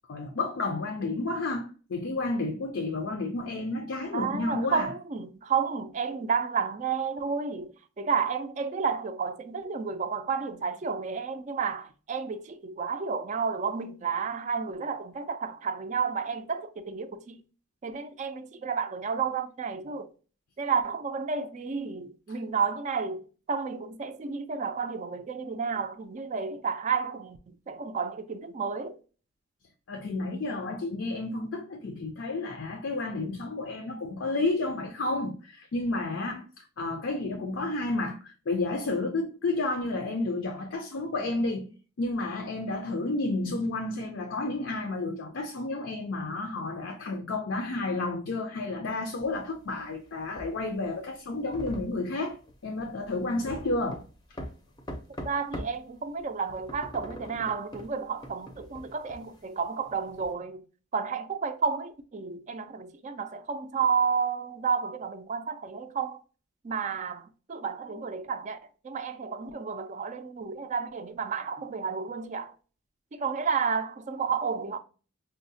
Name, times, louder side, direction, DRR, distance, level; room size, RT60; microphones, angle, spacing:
voice 1, 0.1-4.9 29.9-41.7 42.0-52.4 52.6-54.0, left 2 dB, 70° left, 0.5 m, -31 dB
voice 2, 4.1-17.4 17.8-20.1 20.6-29.0 55.2-60.6 60.9-66.2 66.6-68.6 68.8-72.5 73.1-74.8, right 5 dB, 35° right, 0.3 m, -31 dB
sound 1, 49.2-55.8 56.2-60.3, equal, 20° left, 0.5 m, -42 dB
5.4 x 2.0 x 2.6 m
head